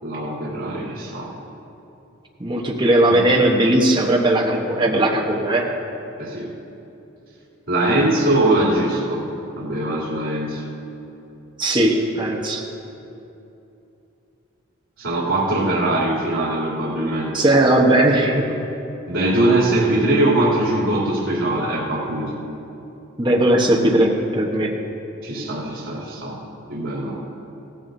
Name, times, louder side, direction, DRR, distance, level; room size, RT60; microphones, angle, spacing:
voice 1, 0.0-1.3 3.1-3.2 6.2-6.5 7.7-9.3 9.6-10.6 15.0-17.4 19.1-22.4 25.2-26.4 26.7-27.2, right 1 dB, 75° right, -8 dB, 3.1 m, -21 dB
voice 2, 2.4-5.7 11.6-12.6 17.3-18.6 23.2-24.8, right 1 dB, 20° right, -2 dB, 1.0 m, -18 dB
17.0 x 15.0 x 2.7 m, 2.9 s
head